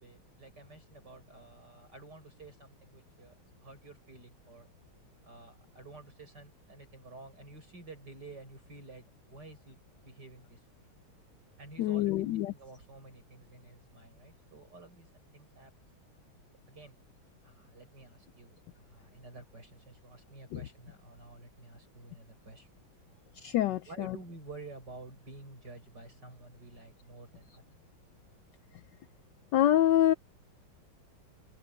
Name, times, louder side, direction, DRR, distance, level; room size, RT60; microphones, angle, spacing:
voice 1, 0.0-3.3 3.6-4.7 5.2-10.9 11.6-15.7 16.7-17.0 17.4-22.7 23.7-27.8, right 3 dB, 55° right, 7.9 m, -51 dB
voice 2, 11.8-12.5 20.5-20.6 23.4-24.1 29.5-30.1, left 12 dB, 70° left, 1.2 m, -26 dB
open air
omnidirectional pair, 2.2 m